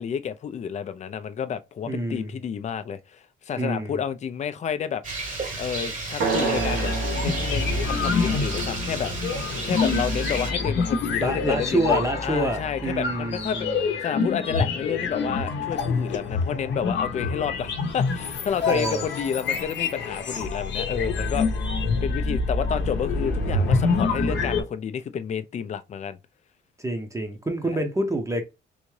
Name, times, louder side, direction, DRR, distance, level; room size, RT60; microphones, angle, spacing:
voice 1, 0.0-5.0 5.6-9.1 9.6-13.7 14.0-21.5 22.0-26.2 27.7-27.8, left 7 dB, 35° left, 0.4 m, -30 dB
voice 2, 1.9-2.4 3.6-4.0 11.2-13.9 18.7-19.0 26.8-28.4, right 1 dB, 15° right, 0.7 m, -27 dB
Rain, 5.0-10.5, right 3 dB, 40° right, 1.0 m, -33 dB
sound 1, 6.2-10.1, right 5 dB, 85° right, 1.0 m, -31 dB
sound 2, 6.5-24.6, left 4 dB, 65° left, 0.7 m, -26 dB
3.5 x 2.6 x 3.1 m
cardioid pair, 90°, 20 cm